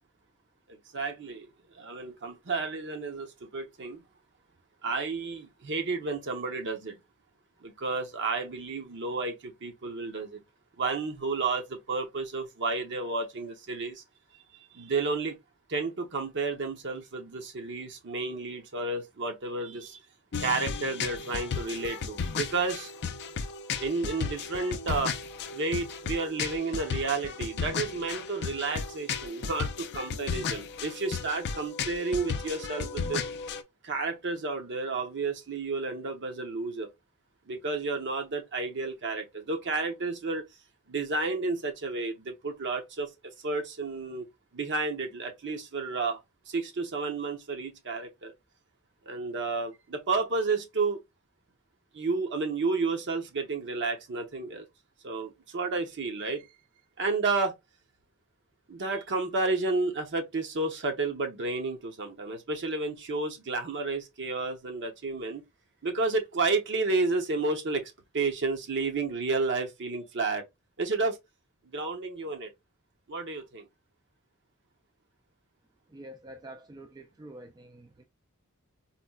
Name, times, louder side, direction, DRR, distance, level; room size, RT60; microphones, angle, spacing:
voice 1, 0.7-1.5 1.7-4.0 4.8-7.0 7.6-10.4 10.8-14.0 14.7-15.4 15.7-20.0 20.4-22.9 23.8-25.1 25.5-33.2 33.8-36.9 37.5-40.4 40.9-44.3 44.5-46.2 46.5-48.3 49.1-51.0 51.9-54.7 55.0-56.5 57.0-57.5 58.7-65.4 65.8-70.4 70.8-71.2 71.7-72.5 73.1-73.7, right 3 dB, 55° right, 0.8 m, -31 dB
sound 1, 20.3-33.6, left 5 dB, 50° left, 0.4 m, -34 dB
voice 2, 75.9-78.0, right 1 dB, 20° right, 0.3 m, -47 dB
4.1 x 2.1 x 2.3 m
head